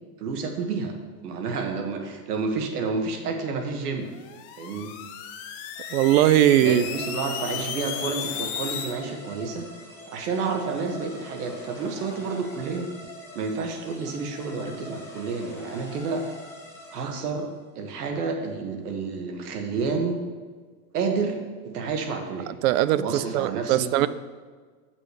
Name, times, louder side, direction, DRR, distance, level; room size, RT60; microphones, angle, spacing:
voice 1, 0.2-0.9 1.2-4.1 4.6-4.9 6.6-9.7 10.1-12.9 13.3-16.3 16.9-17.5 17.7-20.2 20.9-21.4 21.7-22.5 22.9-23.9, right 4 dB, 85° right, 4 dB, 1.6 m, -30 dB
sound 1, 4.1-9.0, left 8 dB, 35° left, 0.6 m, -35 dB
sound 2, 5.8-17.4, left 1 dB, 5° left, 1.0 m, -44 dB
voice 2, 5.9-6.8 22.6-24.1, right 13 dB, 65° right, 15 dB, 0.5 m, -20 dB
8.0 x 6.1 x 5.0 m, 1.5 s
supercardioid pair, 165°, 45 cm